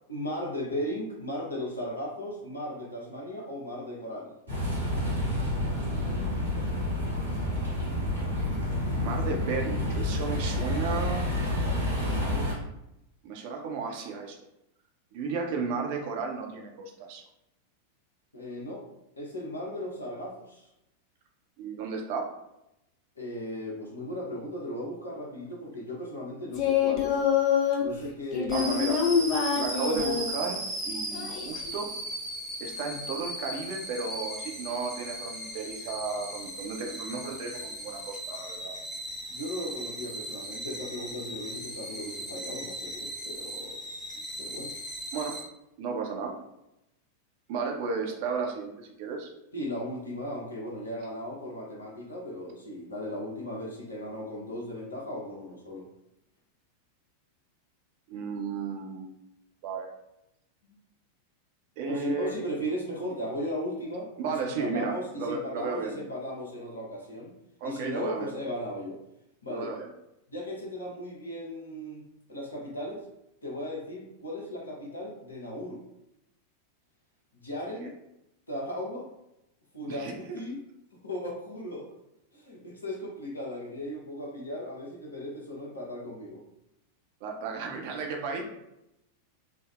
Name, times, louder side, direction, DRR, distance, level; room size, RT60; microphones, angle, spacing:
voice 1, 0.1-4.4 18.3-18.9 19.2-20.7 23.2-27.2 27.8-29.0 39.3-43.8 44.4-44.7 49.5-55.9 60.6-60.8 61.8-67.3 67.6-69.0 69.4-69.7 70.3-72.0 72.3-73.0 73.4-75.8 77.3-77.9 78.5-79.1 79.7-80.6 81.0-81.9 82.3-86.4, equal, 75° left, -3 dB, 0.8 m, -36 dB
sound 1, 4.5-12.5, left 1 dB, 85° right, 1.2 m, -29 dB
voice 2, 9.0-11.3 12.3-12.7 13.2-14.4 15.1-17.2 21.6-22.4 28.5-29.0 29.5-30.6 30.9-31.9 32.6-38.7 45.1-45.4 45.8-46.4 47.5-49.3 58.1-59.1 59.6-59.9 61.8-62.4 64.2-66.0 67.6-68.4 69.5-69.9 77.8-77.9 79.9-80.4 87.2-88.4, right 5 dB, 50° right, 1 dB, 0.5 m, -34 dB
Singing, 26.5-27.8 28.3-30.3 31.1-31.7, left 8 dB, 40° left, 0.5 m, -26 dB
sound 2, 28.5-45.4, right 1 dB, ahead, 0.8 m, -37 dB
3.4 x 2.0 x 2.3 m, 0.86 s
figure-of-eight pair, 90°, 0 cm